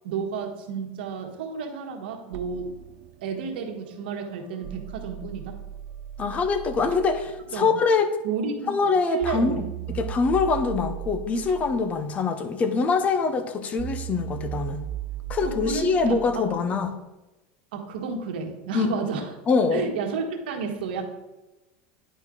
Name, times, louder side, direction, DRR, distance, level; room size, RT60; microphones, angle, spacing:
voice 1, 0.0-2.7 3.2-5.6 7.5-7.7 8.2-10.0 15.4-16.5 17.7-19.3 19.7-21.1, right 5 dB, 80° right, 3 dB, 1.4 m, -31 dB
sound 1, 2.3-7.5 9.2-16.6, right 11 dB, 45° right, 0.4 m, -37 dB
voice 2, 6.2-8.1 8.7-9.6 10.0-14.8 15.3-16.9 18.7-18.9 19.5-19.9, left 4 dB, 25° left, 9 dB, 0.8 m, -24 dB
10.0 x 4.5 x 3.8 m, 1.0 s
supercardioid pair, 130°, 5 cm